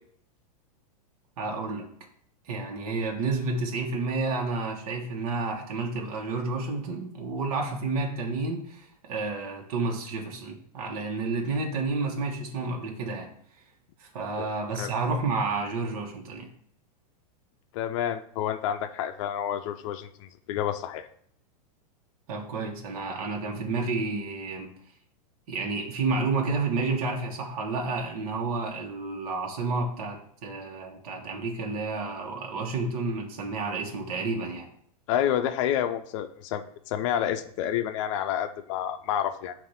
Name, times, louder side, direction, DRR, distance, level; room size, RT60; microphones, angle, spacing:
voice 1, 1.4-1.9 2.5-13.3 14.0-16.5 22.3-24.7 25.5-34.7, right 3 dB, 65° right, 1 dB, 1.4 m, -30 dB
voice 2, 17.7-21.1 35.1-39.5, left 10 dB, 50° left, 9 dB, 0.5 m, -29 dB
7.4 x 2.6 x 5.7 m, 0.64 s
hypercardioid pair, 135°, 20 cm